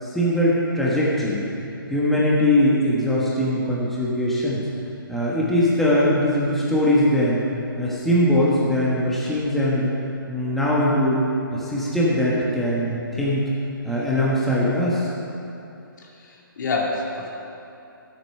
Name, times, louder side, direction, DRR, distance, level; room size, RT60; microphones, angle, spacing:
voice 1, 0.0-1.5 1.9-4.6 5.1-7.4 7.8-9.9 10.3-11.2 11.5-13.5 13.8-15.1, left 1 dB, ahead, -7 dB, 1.4 m, -21 dB
voice 2, 16.0-17.4, left 3 dB, 55° left, -2 dB, 2.5 m, -28 dB
13.5 x 8.3 x 5.6 m, 2.9 s
hypercardioid pair, 145°, 12 cm